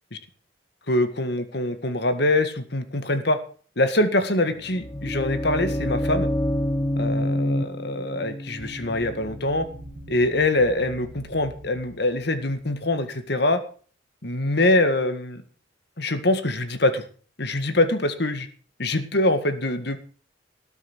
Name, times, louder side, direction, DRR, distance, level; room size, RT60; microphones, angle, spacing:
voice 1, 0.9-3.4 3.8-6.3 7.0-9.7 10.1-13.6 14.2-15.4 16.0-17.0 17.4-18.5 18.8-20.0, left 1 dB, 60° left, 9 dB, 1.8 m, -24 dB
sound 1, 4.5-10.4, left 1 dB, 20° left, 0.6 m, -28 dB
sound 2, 8.6-13.3, right 1 dB, 50° right, 1.5 m, -44 dB
18.5 x 7.2 x 6.3 m, 0.41 s
head